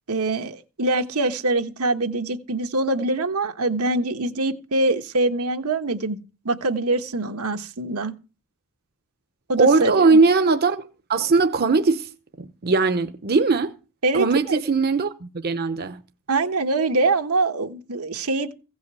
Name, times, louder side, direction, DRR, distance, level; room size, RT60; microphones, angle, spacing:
voice 1, 0.1-6.2 6.4-8.1 9.5-10.2 14.0-14.6 16.3-18.5, right 2 dB, 85° right, 1.4 m, -24 dB
voice 2, 9.6-12.1 12.4-13.7 14.1-16.0, right 4 dB, 45° right, 0.8 m, -20 dB
16.0 x 5.5 x 8.2 m
head